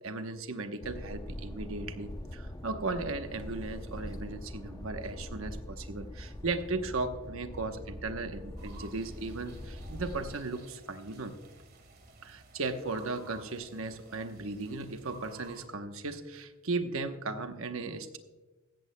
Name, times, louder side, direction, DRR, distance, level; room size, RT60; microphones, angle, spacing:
voice 1, 0.0-11.3 12.2-18.2, right 3 dB, 70° right, 8 dB, 1.0 m, -36 dB
sound 1, 0.8-10.4, left 1 dB, 15° left, 0.7 m, -43 dB
sound 2, 8.6-15.7, right 3 dB, 45° right, 1.9 m, -53 dB
15.5 x 14.0 x 2.2 m, 1.2 s
head